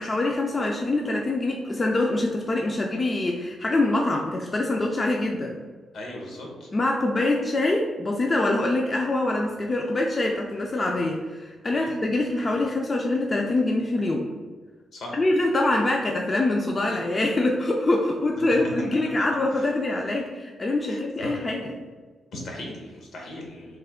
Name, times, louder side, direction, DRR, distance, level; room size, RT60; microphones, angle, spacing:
voice 1, 0.0-5.6 6.7-14.3 15.1-21.7, left 2 dB, 30° left, 0 dB, 0.3 m, -24 dB
voice 2, 5.9-6.7 11.7-12.0 14.9-15.2 19.6-19.7 20.9-21.3 22.3-23.8, left 1 dB, 70° left, -1 dB, 0.9 m, -38 dB
3.2 x 2.2 x 3.5 m, 1.3 s
cardioid pair, 105°, 0 cm